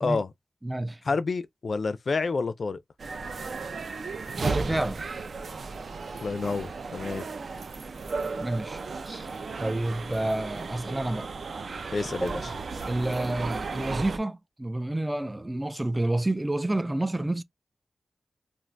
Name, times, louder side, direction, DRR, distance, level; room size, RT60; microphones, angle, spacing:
voice 1, 0.0-0.3 1.1-2.8 6.2-7.3 11.9-12.4, left 4 dB, 60° left, 0.4 m, -29 dB
voice 2, 0.6-1.0 4.4-5.0 8.4-9.3 9.6-11.3 12.2-12.6 12.9-17.4, right 1 dB, 15° right, 0.3 m, -29 dB
sound 1, 3.0-14.2, right 4 dB, 70° right, 0.5 m, -35 dB
2.5 x 2.4 x 3.2 m
wide cardioid pair, 95°, 0 cm